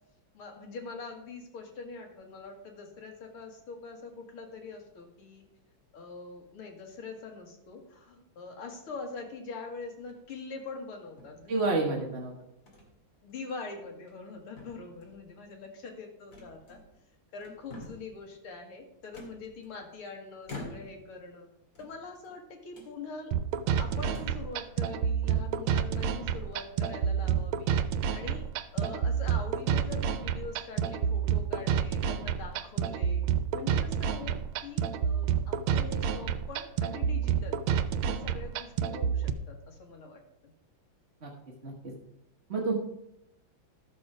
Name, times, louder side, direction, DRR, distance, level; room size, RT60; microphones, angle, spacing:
voice 1, 0.3-5.4 5.9-11.7 13.2-16.8 17.3-21.5 21.8-23.3 23.8-27.8 28.1-28.5 28.7-33.3 33.5-40.2, left 4 dB, 85° left, 3 dB, 2.6 m, -43 dB
sound 1, 9.9-10.4 11.2-11.9 12.7-12.9 13.3-13.4 13.9-14.3 14.6-15.3 16.3-17.0 17.4-18.2 19.1-20.0 20.4-21.1 21.7-22.3 22.7-22.9 23.6-23.7 24.0-24.5, left 2 dB, 40° left, 2.6 m, -47 dB
voice 2, 11.5-12.3 41.2-41.3 41.6-41.7 42.5-42.7, right 3 dB, 35° right, -1 dB, 1.3 m, -28 dB
sound 2, 23.3-39.3, right 8 dB, 90° right, 1.5 m, -29 dB
12.5 x 6.9 x 4.8 m, 0.84 s
omnidirectional pair, 2.3 m